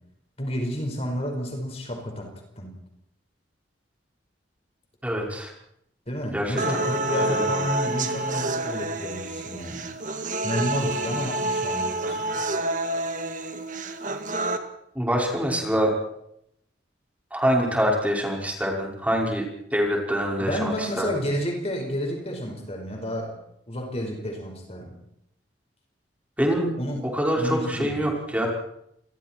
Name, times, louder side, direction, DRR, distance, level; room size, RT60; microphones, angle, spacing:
voice 1, 0.4-2.7 6.1-9.9 10.4-12.4 20.4-23.4 23.7-25.0 26.8-27.1 27.3-28.0, equal, 35° left, 3 dB, 5.2 m, -30 dB
voice 2, 5.0-5.5 6.3-6.6 7.3-7.4 15.0-15.9 17.3-19.5 19.7-21.2 26.4-26.7 27.1-28.5, equal, 10° right, -1 dB, 5.6 m, -25 dB
sound 1, 6.6-14.6, right 2 dB, 45° right, 2.0 m, -28 dB
28.5 x 22.5 x 4.6 m, 0.75 s
head